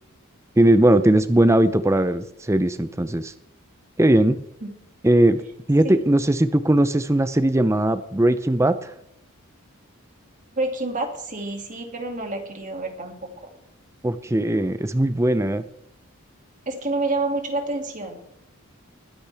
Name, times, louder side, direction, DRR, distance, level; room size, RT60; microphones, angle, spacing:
voice 1, 0.6-3.3 4.0-4.4 5.0-5.4 5.7-8.9 14.0-15.6, right 1 dB, 15° right, 12 dB, 0.6 m, -19 dB
voice 2, 10.6-13.3 16.7-18.2, right 2 dB, 35° right, 3 dB, 2.4 m, -28 dB
21.0 x 10.0 x 3.5 m, 0.79 s
head